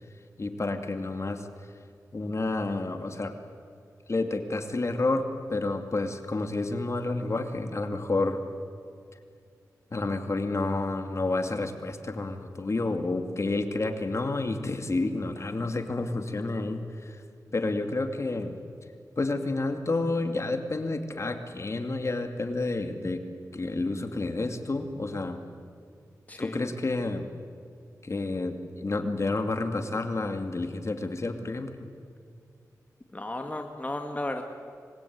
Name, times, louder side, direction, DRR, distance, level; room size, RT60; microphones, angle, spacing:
voice 1, 0.4-1.5 2.1-3.3 4.1-8.4 9.9-17.2 17.5-18.6 19.2-23.2 23.5-25.4 26.4-27.3 28.0-31.9, left 2 dB, 45° left, 6 dB, 2.5 m, -30 dB
voice 2, 26.3-26.6 33.1-34.4, left 1 dB, 25° left, 4 dB, 2.0 m, -34 dB
25.5 x 21.0 x 9.6 m, 2.3 s
cardioid pair, 60°, 7 cm